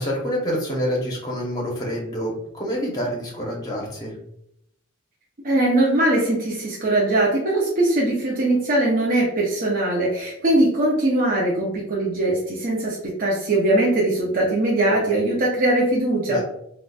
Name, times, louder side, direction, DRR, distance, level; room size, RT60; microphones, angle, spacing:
voice 1, 0.0-4.2 16.3-16.4, equal, 20° left, -3 dB, 0.8 m, -27 dB
voice 2, 5.4-16.4, right 1 dB, 40° right, -4 dB, 0.6 m, -21 dB
3.8 x 2.3 x 2.2 m, 0.76 s
head